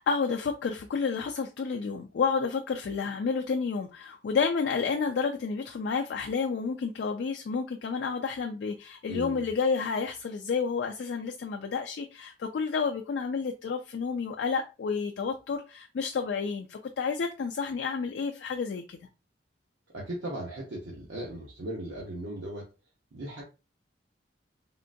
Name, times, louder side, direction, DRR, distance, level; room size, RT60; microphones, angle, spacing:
voice 1, 0.0-19.0, left 5 dB, 70° left, 0.3 m, -30 dB
voice 2, 9.1-9.4 19.9-22.7 23.1-23.4, right 1 dB, 85° right, 0.8 m, -37 dB
3.6 x 2.2 x 2.6 m
head